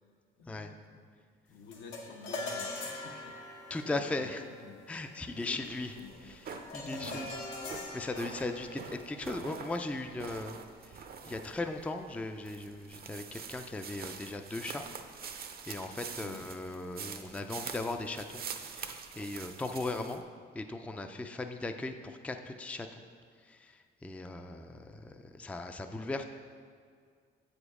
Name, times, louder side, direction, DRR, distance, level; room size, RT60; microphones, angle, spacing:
voice 1, 0.4-1.0 1.5-3.5 3.8-4.8 5.4-6.3 6.8-7.3 16.2-16.5, left 4 dB, 70° left, 4 dB, 0.8 m, -50 dB
strings short melody, 1.7-11.2, left 2 dB, 90° left, 1.2 m, -44 dB
voice 2, 3.7-4.4 4.9-5.9 6.2-7.4 7.9-10.6 10.8-14.8 15.7-18.4 18.7-20.2 20.5-23.0 23.5-26.2, left 2 dB, 5° left, 6 dB, 0.4 m, -38 dB
Walking on forest floor, 5.6-20.2, right 6 dB, 50° right, 0.6 m, -46 dB
7.7 x 5.1 x 4.8 m, 2.1 s
cardioid pair, 90°, 20 cm